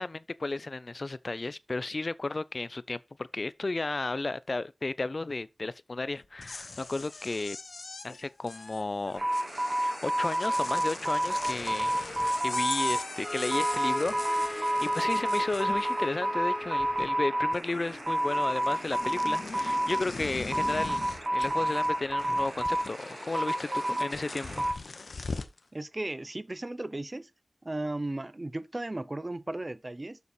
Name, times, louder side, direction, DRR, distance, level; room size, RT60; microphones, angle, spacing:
voice 1, 0.0-3.0 3.3-7.6 8.0-9.2 9.8-12.0 12.4-21.0 21.3-24.7, left 3 dB, 50° left, 0.5 m, -33 dB
sound 1, 6.2-16.3 16.6-17.3 17.5-25.6, left 3 dB, 80° left, 1.0 m, -41 dB
sound 2, 9.2-24.7, right 1 dB, 50° right, 2.1 m, -30 dB
sound 3, 13.2-17.6, equal, 10° right, 1.7 m, -38 dB
voice 2, 25.7-27.3 27.6-30.2, right 2 dB, 30° right, 0.6 m, -35 dB
6.9 x 6.7 x 4.4 m
wide cardioid pair, 70°, 0 cm